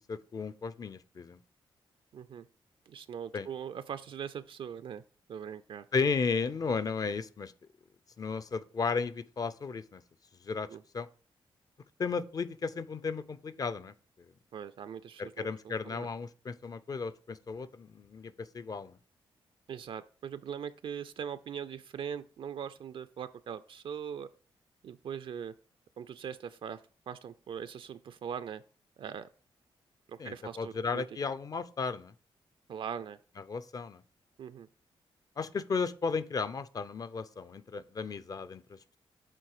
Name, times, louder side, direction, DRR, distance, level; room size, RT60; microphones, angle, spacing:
voice 1, 0.1-1.4 3.3-3.5 5.9-7.5 8.2-10.0 10.4-10.7 10.9-11.1 12.0-14.3 15.2-19.0 30.2-32.1 33.5-34.0 35.4-39.0, left 5 dB, 40° left, 0.4 m, -34 dB
voice 2, 2.1-2.5 2.9-5.0 5.3-5.8 10.7-10.8 14.5-16.1 19.7-24.3 24.8-25.5 26.0-26.8 27.1-28.6 29.0-29.3 30.1-31.0 32.7-33.2 34.4-34.7, right 8 dB, 65° right, 0.4 m, -41 dB
7.6 x 3.6 x 4.8 m
cardioid pair, 100°, 10 cm